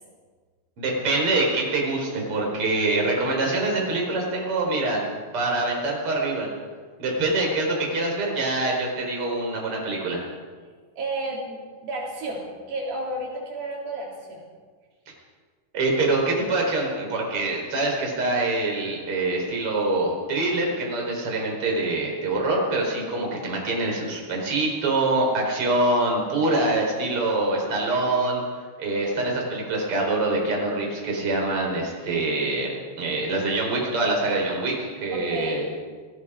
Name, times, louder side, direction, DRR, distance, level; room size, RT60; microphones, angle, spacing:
voice 1, 0.8-5.0 5.3-6.5 7.0-10.2 15.7-28.4 28.8-35.7, right 2 dB, 35° right, -1 dB, 5.2 m, -25 dB
voice 2, 10.9-14.4 35.1-35.6, right 1 dB, 85° right, -2 dB, 6.1 m, -32 dB
29.0 x 18.0 x 5.1 m, 1.5 s
omnidirectional pair, 4.7 m